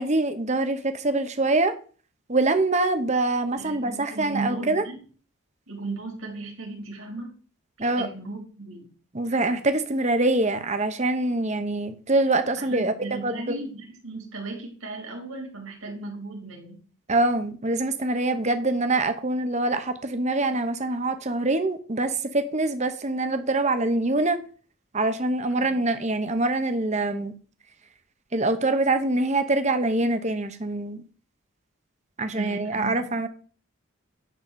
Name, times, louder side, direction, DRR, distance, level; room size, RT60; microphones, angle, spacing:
voice 1, 0.0-1.7 2.3-4.8 7.8-8.1 9.1-12.9 13.2-13.6 17.1-24.4 24.9-27.3 28.3-31.0 32.2-33.3, right 2 dB, 30° right, 1.0 m, -24 dB
voice 2, 3.6-5.0 5.7-7.3 7.8-8.9 12.6-16.8 25.6-25.8 32.3-32.9, right 3 dB, 70° right, 3.8 m, -36 dB
11.0 x 4.0 x 7.5 m
head